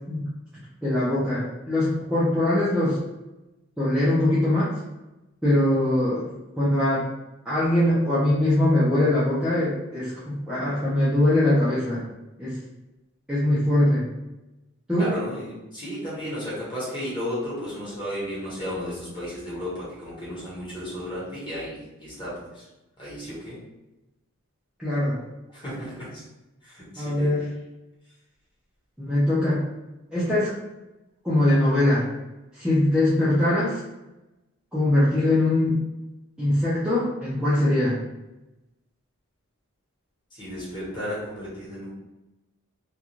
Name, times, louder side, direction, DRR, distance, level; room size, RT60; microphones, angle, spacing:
voice 1, 0.8-3.0 3.8-4.7 5.4-6.3 6.6-7.0 7.5-12.0 12.4-12.6 13.3-14.1 14.9-15.1 24.8-25.2 27.0-27.5 29.0-29.6 30.1-30.5 31.2-32.1 32.5-33.8 34.7-35.8 36.4-38.0, left 1 dB, 5° right, -11 dB, 0.4 m, -22 dB
voice 2, 15.0-22.6 23.0-23.6 25.5-26.2 26.6-27.3 40.3-41.9, equal, 20° left, -8 dB, 1.1 m, -34 dB
2.4 x 2.2 x 2.9 m, 0.99 s
head